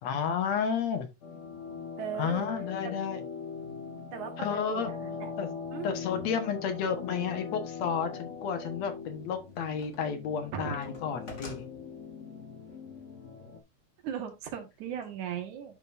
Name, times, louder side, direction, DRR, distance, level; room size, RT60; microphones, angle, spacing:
voice 1, 0.0-1.1 2.2-3.2 4.4-4.9 5.4-5.5 5.8-11.6, left 7 dB, 65° left, 2.4 m, -31 dB
sound 1, 1.2-13.6, left 5 dB, 90° left, 0.6 m, -41 dB
voice 2, 2.0-2.5 4.1-5.3 5.7-5.9 6.1-6.3 10.5-10.8 14.0-15.8, right 8 dB, 80° right, 3.0 m, -38 dB
sound 2, 9.1-10.2 10.5-11.7, left 1 dB, 30° left, 1.6 m, -47 dB
10.5 x 5.3 x 2.6 m
omnidirectional pair, 3.3 m